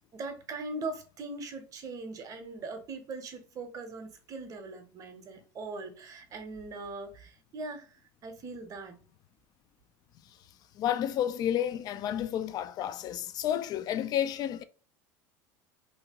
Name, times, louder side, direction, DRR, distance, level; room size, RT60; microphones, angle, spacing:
voice 1, 0.1-8.0 8.2-8.9, right 3 dB, 35° right, 0.7 m, -40 dB
voice 2, 10.8-14.6, left 10 dB, 45° left, 0.4 m, -31 dB
2.8 x 2.6 x 2.8 m
supercardioid pair, 110°, 10 cm